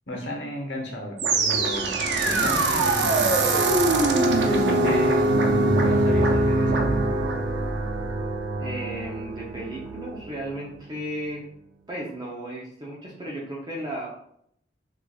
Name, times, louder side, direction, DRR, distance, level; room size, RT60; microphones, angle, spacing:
voice 1, 0.1-3.7 4.4-5.3 5.8-7.0, left 1 dB, 75° left, 0 dB, 0.9 m, -33 dB
sound 1, 1.2-10.3, right 2 dB, 70° right, 0.5 m, -23 dB
voice 2, 8.6-11.4 11.9-14.1, right 1 dB, 25° right, -5 dB, 0.6 m, -34 dB
4.9 x 2.4 x 2.3 m, 0.70 s
head